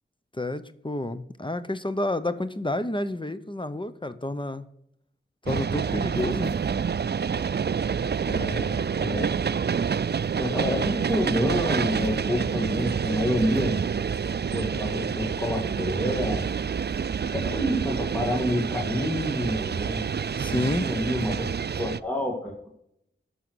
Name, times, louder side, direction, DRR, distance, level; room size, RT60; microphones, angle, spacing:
voice 1, 0.3-4.7 5.5-6.5 8.2-8.9 14.7-14.8 20.4-20.9, left 1 dB, 25° left, 12 dB, 0.7 m, -30 dB
sound 1, 5.5-22.0, right 6 dB, 55° right, 0.4 m, -28 dB
voice 2, 10.4-13.8 14.5-16.5 17.3-20.0 20.5-21.4 21.8-22.5, equal, 5° left, -3 dB, 2.0 m, -28 dB
11.0 x 6.4 x 6.2 m, 0.76 s
wide cardioid pair, 55°, 21 cm